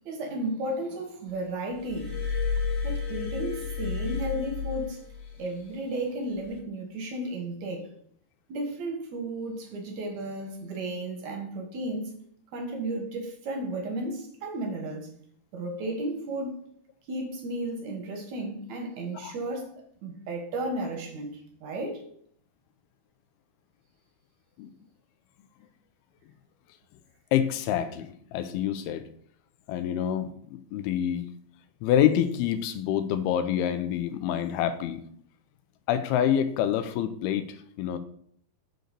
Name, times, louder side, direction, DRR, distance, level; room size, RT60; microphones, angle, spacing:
voice 1, 0.1-2.1 2.8-5.0 5.4-7.9 8.5-12.1 12.5-15.1 15.5-16.6 17.1-19.7 20.0-22.0, right 1 dB, 65° right, 2.1 m, -33 dB
Glass, 1.8-5.4 6.4-6.6, left 5 dB, 25° left, 1.5 m, -31 dB
voice 2, 27.3-29.0 29.7-31.3 31.8-35.0 35.9-38.0, left 10 dB, 85° left, 2.5 m, -27 dB
7.8 x 3.9 x 6.6 m
omnidirectional pair, 4.5 m